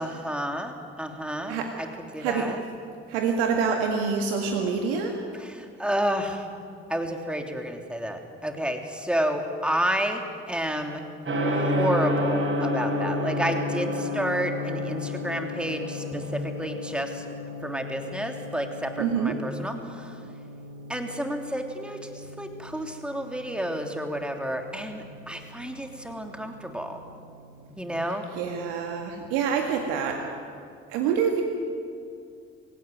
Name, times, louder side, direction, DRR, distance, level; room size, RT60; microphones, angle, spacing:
voice 1, 0.0-1.9 2.1-2.6 5.3-6.5 6.9-10.2 10.5-11.0 11.6-17.2 17.6-20.2 20.9-27.0 27.8-28.3, right 1 dB, 5° right, 4 dB, 3.2 m, -30 dB
voice 2, 2.2-2.5 3.1-5.2 19.0-19.3 28.4-30.2 30.9-31.4, right 6 dB, 75° right, 3 dB, 2.0 m, -26 dB
Gong, 11.2-30.2, left 1 dB, 40° right, 6.0 m, -33 dB
26.5 x 17.0 x 9.4 m, 2.4 s
hypercardioid pair, 50°, 32 cm